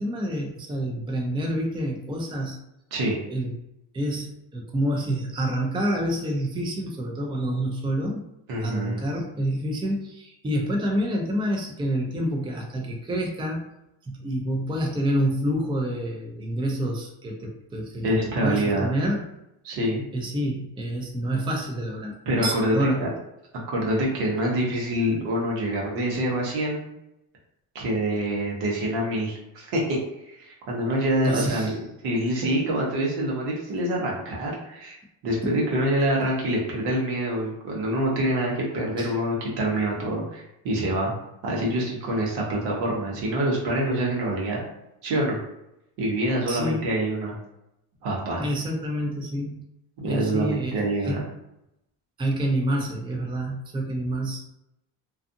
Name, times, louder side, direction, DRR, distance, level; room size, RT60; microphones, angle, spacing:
voice 1, 0.0-2.6 3.3-3.5 3.9-8.2 8.6-13.7 14.0-19.3 20.1-23.1 31.2-31.8 35.4-35.5 39.0-39.1 46.5-46.9 48.4-49.6 50.1-51.3 52.2-54.4, right 1 dB, 10° right, 0 dB, 0.5 m, -28 dB
voice 2, 8.5-9.0 18.0-18.9 19.6-20.0 22.3-23.1 23.7-26.9 27.7-30.0 30.2-35.0 35.2-41.1 41.4-44.6 45.0-45.4 46.0-47.3 48.0-48.5 50.0-51.2, right 1 dB, 75° right, -3 dB, 1.1 m, -26 dB
2.6 x 2.4 x 2.6 m, 0.85 s
supercardioid pair, 80°, 43 cm